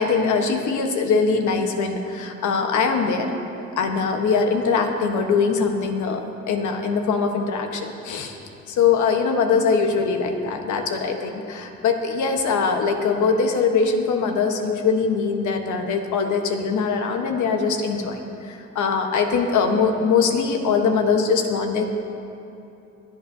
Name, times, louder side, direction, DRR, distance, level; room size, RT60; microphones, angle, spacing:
voice 1, 0.0-3.3 3.8-6.2 6.5-8.4 8.7-18.2 18.4-21.9, left 5 dB, 75° left, 4 dB, 1.2 m, -22 dB
23.0 x 8.3 x 2.7 m, 2.7 s
cardioid pair, 90°, 30 cm